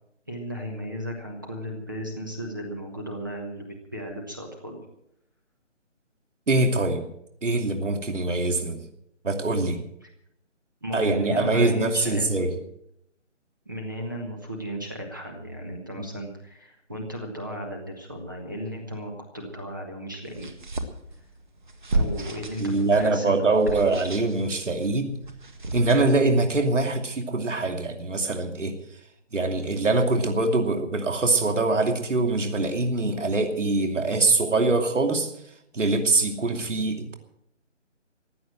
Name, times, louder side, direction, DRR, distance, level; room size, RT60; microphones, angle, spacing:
voice 1, 0.3-4.8 10.0-10.1 10.8-12.6 13.6-20.5 21.9-24.0, equal, 15° right, 1 dB, 1.1 m, -35 dB
voice 2, 6.5-7.0 7.4-8.8 9.2-9.8 10.9-12.5 22.6-25.2 25.7-28.8 29.3-35.3 35.7-37.1, right 2 dB, 75° right, 4 dB, 2.8 m, -23 dB
sound 1, 20.3-26.6, right 2 dB, 40° right, 1.8 m, -33 dB
15.5 x 10.5 x 7.5 m, 0.76 s
hypercardioid pair, 175°, 37 cm